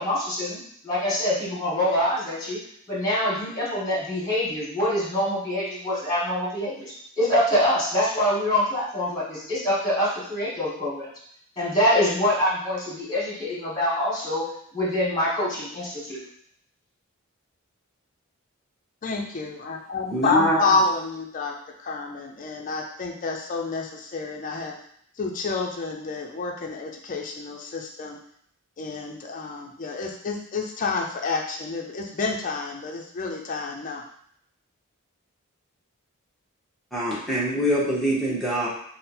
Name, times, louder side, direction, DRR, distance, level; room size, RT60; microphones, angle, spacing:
voice 1, 0.0-2.6 2.9-11.1 11.6-14.5 14.7-16.2, left 1 dB, 20° left, -6 dB, 1.4 m, -25 dB
voice 2, 19.0-21.5 21.8-24.7 25.2-28.2 28.8-34.0, left 3 dB, 40° left, 1 dB, 0.5 m, -29 dB
voice 3, 20.1-20.8 36.9-38.7, equal, ahead, -8 dB, 0.8 m, -24 dB
3.7 x 2.0 x 4.2 m, 0.65 s
head